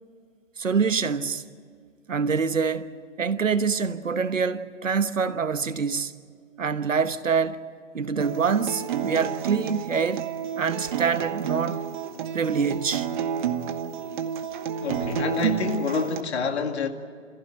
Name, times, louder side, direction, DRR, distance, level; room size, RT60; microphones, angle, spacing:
voice 1, 0.6-1.4 2.1-2.9 3.2-6.1 6.6-7.6 7.9-10.3 10.6-11.8 12.3-13.1, right 5 dB, 90° right, 1.3 m, -25 dB
Acoustic guitar, 8.2-16.2, right 8 dB, 40° right, 1.2 m, -30 dB
voice 2, 14.8-16.9, left 5 dB, 60° left, 2.2 m, -27 dB
27.0 x 15.5 x 8.8 m
hypercardioid pair, 145°, 38 cm